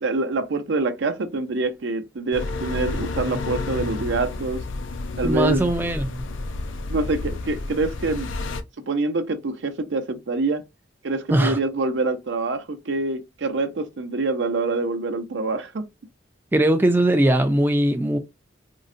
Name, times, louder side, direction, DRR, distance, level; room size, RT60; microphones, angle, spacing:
voice 1, 0.0-4.6 5.2-5.7 6.9-8.3 8.9-10.6 11.0-15.8, right 3 dB, 70° right, 0.5 m, -25 dB
sound 1, 2.3-8.6, left 2 dB, 90° left, 0.5 m, -30 dB
voice 2, 5.2-6.2 11.3-11.6 16.5-18.2, right 1 dB, 10° right, 0.3 m, -20 dB
3.8 x 2.1 x 2.5 m
head